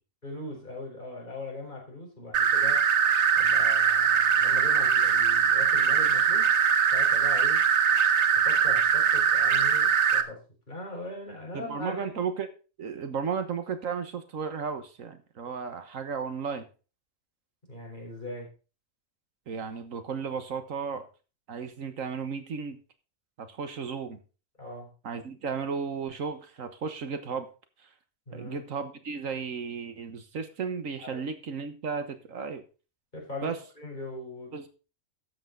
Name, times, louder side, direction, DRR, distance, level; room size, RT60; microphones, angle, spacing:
voice 1, 0.2-2.8 3.4-6.5 6.9-7.6 8.4-10.4 10.7-12.3 17.7-18.5 24.6-24.9 28.3-28.6 31.0-31.2 33.1-34.7, left 2 dB, 35° left, -1 dB, 4.5 m, -40 dB
sound 1, 2.3-10.2, right 7 dB, 60° right, 1.1 m, -22 dB
voice 2, 11.5-12.5 12.8-16.7 19.5-21.0 21.5-22.8 23.4-24.2 25.0-27.5 28.3-32.6 33.4-33.6 34.5-34.7, right 6 dB, 85° right, 9 dB, 1.6 m, -34 dB
12.5 x 8.0 x 3.9 m, 0.34 s
omnidirectional pair, 1.3 m